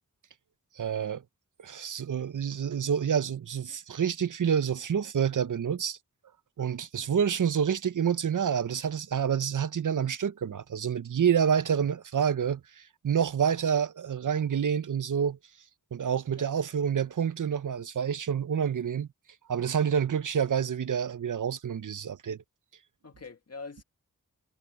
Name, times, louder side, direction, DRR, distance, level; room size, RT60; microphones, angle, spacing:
voice 1, 0.8-1.2 1.6-6.0 6.6-15.4 15.9-19.1 19.5-22.4, right 7 dB, 60° right, 0.7 m, -28 dB
voice 2, 11.4-11.8 16.3-16.5 23.0-23.8, left 4 dB, 45° left, 1.6 m, -45 dB
wide cardioid pair, 65°, 34 cm